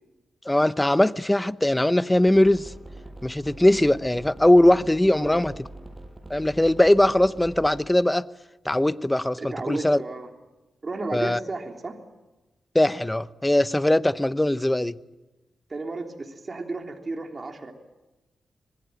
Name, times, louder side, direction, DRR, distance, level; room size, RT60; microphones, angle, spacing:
voice 1, 0.5-2.7 3.2-5.7 6.3-8.3 8.6-10.0 11.1-11.4 12.7-15.0, left 1 dB, 10° left, 0.8 m, -20 dB
sound 1, 2.3-7.8, right 1 dB, 20° right, 6.1 m, -43 dB
voice 2, 5.1-5.5 9.4-10.3 10.8-12.0 15.7-17.7, right 3 dB, 35° right, 3.5 m, -33 dB
25.5 x 20.5 x 9.2 m
wide cardioid pair, 95°, 0 cm